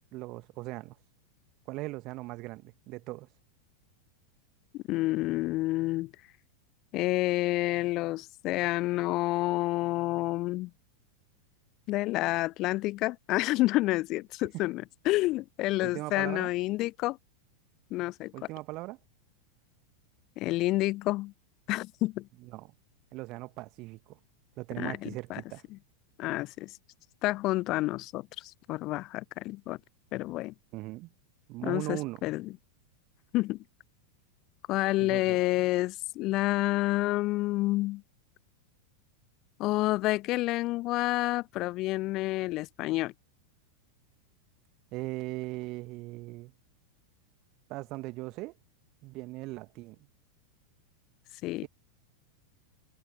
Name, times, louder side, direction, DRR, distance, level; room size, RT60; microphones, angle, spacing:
voice 1, 0.1-1.0 1.7-3.3 15.8-16.5 18.3-19.0 22.5-22.7 23.1-24.2 24.6-25.6 30.7-31.1 31.5-32.2 35.0-35.4 44.9-46.5 47.7-48.5 49.0-50.0, right 21 dB, 40° right, 1.8 m, -39 dB
voice 2, 4.7-6.1 6.9-10.7 11.9-17.2 17.9-18.3 20.4-21.3 21.7-22.3 24.8-25.4 25.7-25.8 26.2-26.7 27.2-29.8 30.1-30.5 31.6-32.5 33.3-33.6 34.7-38.0 39.6-43.1 51.4-51.7, left 19 dB, 40° left, 0.6 m, -29 dB
figure-of-eight pair, 90°, 0 cm